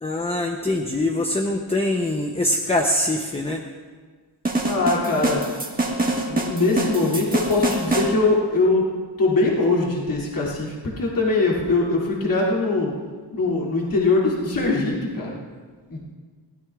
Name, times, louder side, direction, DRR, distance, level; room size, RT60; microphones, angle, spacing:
voice 1, 0.0-3.6, left 1 dB, 15° left, 3 dB, 0.7 m, -23 dB
sound 1, 4.4-8.1, right 2 dB, 20° right, 1.6 m, -25 dB
voice 2, 4.7-5.4 6.3-8.9 9.2-12.9 13.3-15.3 15.9-16.0, left 3 dB, 50° left, -4 dB, 2.6 m, -22 dB
22.0 x 16.5 x 2.4 m, 1.5 s
wide cardioid pair, 150°, 44 cm